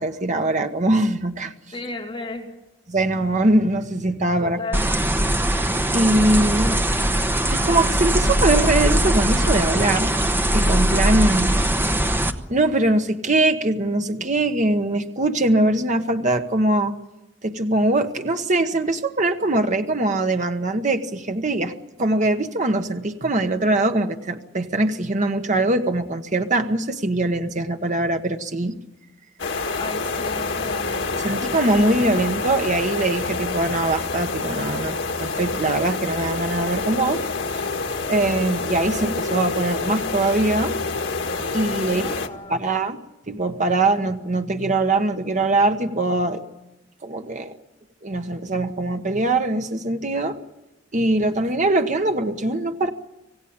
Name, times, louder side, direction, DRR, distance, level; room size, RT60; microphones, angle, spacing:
voice 1, 0.0-1.5 2.9-4.6 5.5-5.6 5.9-6.9 7.5-10.1 10.5-11.5 12.5-16.9 17.4-21.7 22.0-28.8 31.1-37.2 37.5-37.6 38.1-40.7 41.5-42.1 42.5-43.0 43.3-46.4 47.0-47.5 48.0-50.4 50.9-52.9, right 2 dB, 40° right, 6 dB, 1.2 m, -22 dB
voice 2, 1.7-2.5 4.4-4.9 11.4-11.5 29.8-30.9 41.9-42.6, left 2 dB, 25° left, 0 dB, 3.2 m, -34 dB
sound 1, 4.7-12.3, right 1 dB, 10° right, 1.0 m, -20 dB
sound 2, 29.4-42.3, left 3 dB, 75° left, 1.9 m, -27 dB
26.0 x 16.5 x 8.7 m, 0.98 s
head